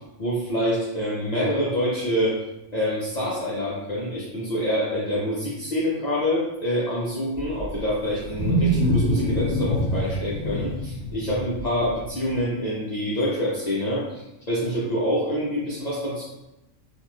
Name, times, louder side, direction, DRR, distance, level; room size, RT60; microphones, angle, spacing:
voice 1, 0.2-2.4 2.7-16.2, equal, 55° left, -7 dB, 0.5 m, -26 dB
Wild animals, 7.4-12.4, equal, 25° left, 1.3 m, -25 dB
2.9 x 2.6 x 2.2 m, 0.95 s
omnidirectional pair, 1.3 m